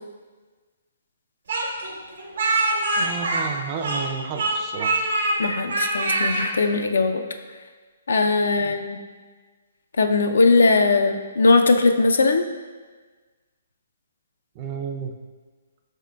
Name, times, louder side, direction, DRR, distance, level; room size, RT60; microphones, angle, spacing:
Speech, 1.5-4.1 4.4-5.4 5.7-6.5, right 2 dB, 80° right, 0.9 m, -23 dB
voice 1, 3.0-4.9 8.6-8.7 14.5-15.1, right 6 dB, 30° right, 4 dB, 0.3 m, -32 dB
voice 2, 5.4-7.2 8.1-9.0 10.0-12.5, left 3 dB, 80° left, 7 dB, 0.3 m, -19 dB
4.9 x 3.5 x 2.2 m, 1.4 s
hypercardioid pair, 145°, 0 cm